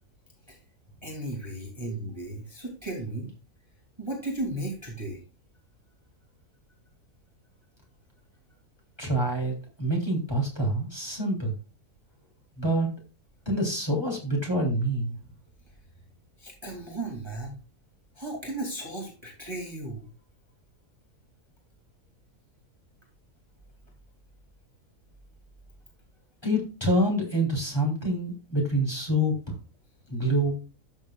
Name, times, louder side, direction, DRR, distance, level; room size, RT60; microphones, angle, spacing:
voice 1, 1.0-3.3 4.0-5.2 16.4-17.5 18.2-20.1, right 2 dB, 15° right, -1 dB, 2.6 m, -35 dB
voice 2, 9.0-11.5 12.6-12.9 13.4-15.2 26.4-29.6 30.1-30.5, right 1 dB, 15° left, -1 dB, 3.4 m, -26 dB
13.0 x 7.3 x 2.4 m, 0.32 s
omnidirectional pair, 1.6 m